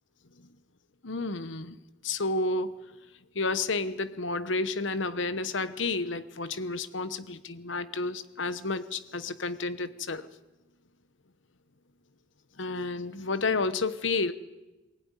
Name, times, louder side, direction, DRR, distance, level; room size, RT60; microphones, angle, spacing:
voice 1, 1.0-1.8 2.0-2.8 3.3-10.3 12.6-14.3, left 3 dB, 70° left, 1.1 m, -31 dB
22.5 x 16.0 x 9.8 m
head